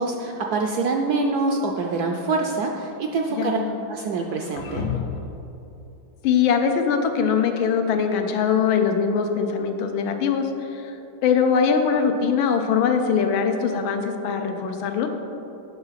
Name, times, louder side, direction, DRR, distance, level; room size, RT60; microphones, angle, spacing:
voice 1, 0.0-3.6 3.9-4.9, right 3 dB, 75° right, 2 dB, 0.9 m, -25 dB
sound 1, 1.8-2.7 4.1-5.4, left 6 dB, 65° left, 1.2 m, -33 dB
voice 2, 3.4-3.8 6.2-11.0 11.2-15.1, left 6 dB, 85° left, 5 dB, 1.5 m, -22 dB
8.3 x 5.7 x 5.6 m, 2.9 s
omnidirectional pair, 2.1 m